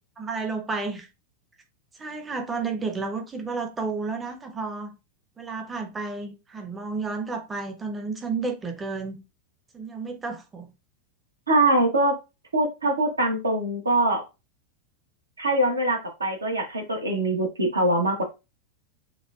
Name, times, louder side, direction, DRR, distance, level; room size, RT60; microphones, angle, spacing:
voice 1, 0.2-1.1 2.0-4.9 5.4-9.2 9.7-10.7, right 4 dB, 15° right, 0.8 m, -31 dB
voice 2, 11.5-12.2 12.5-14.2 15.4-18.2, right 1 dB, 75° right, 1.2 m, -23 dB
7.1 x 2.5 x 2.4 m
figure-of-eight pair, 90°, 0 cm